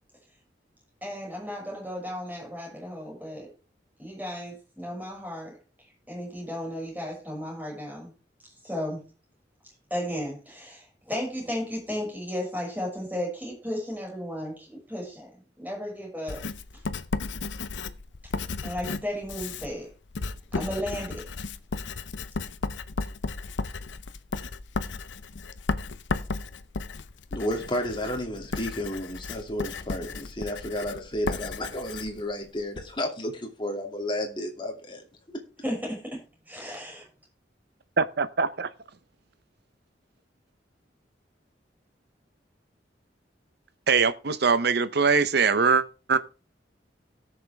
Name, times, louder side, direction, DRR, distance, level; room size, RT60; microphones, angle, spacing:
voice 1, 1.0-3.5 4.0-5.6 6.1-8.1 8.6-9.0 9.9-15.3 15.6-16.4 18.6-19.9 20.5-21.2 35.6-36.2 36.5-37.0, equal, 10° right, 6.0 m, -34 dB
Writing, 16.3-32.9, left 3 dB, 85° left, 0.7 m, -34 dB
voice 2, 27.3-35.4, left 1 dB, 25° left, 2.5 m, -32 dB
voice 3, 38.0-38.7 43.9-46.2, right 5 dB, 65° right, 0.8 m, -22 dB
18.0 x 6.7 x 3.5 m
head